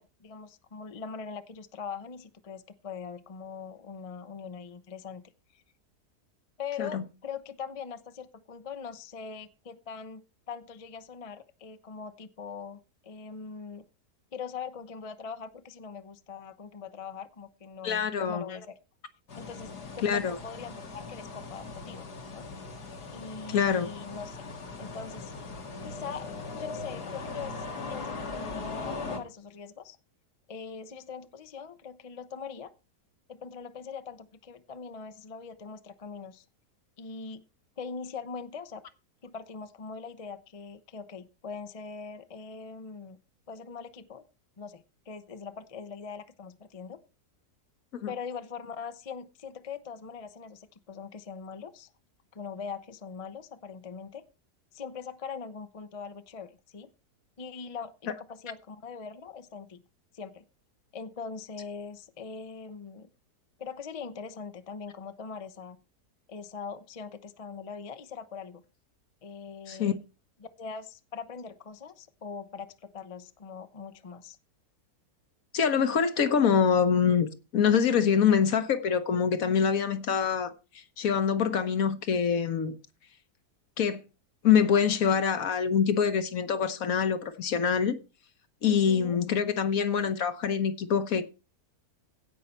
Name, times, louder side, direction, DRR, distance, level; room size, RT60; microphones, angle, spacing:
voice 1, 0.0-5.2 5.5-5.6 6.6-13.9 14.3-18.7 19.4-19.7 20.0-22.5 23.1-24.4 24.8-25.3 25.8-30.0 30.5-32.7 33.3-36.4 37.0-37.4 37.8-38.8 39.2-43.2 43.5-44.2 44.6-47.0 48.1-51.9 52.3-54.2 54.7-56.9 57.4-59.8 60.1-60.4 60.9-63.1 63.6-65.8 66.3-68.6 69.2-70.0 70.6-74.4 88.7-89.2, left 5 dB, 35° left, 0.5 m, -42 dB
voice 2, 17.8-18.4 20.0-20.4 23.5-23.9 48.0-48.1 69.7-69.9 75.5-80.5 81.0-82.7 83.8-84.0 84.4-88.0 88.6-91.2, left 7 dB, 60° left, 1.4 m, -25 dB
sound 1, 19.3-29.2, left 3 dB, 80° left, 2.4 m, -39 dB
16.5 x 5.5 x 4.4 m
omnidirectional pair, 1.7 m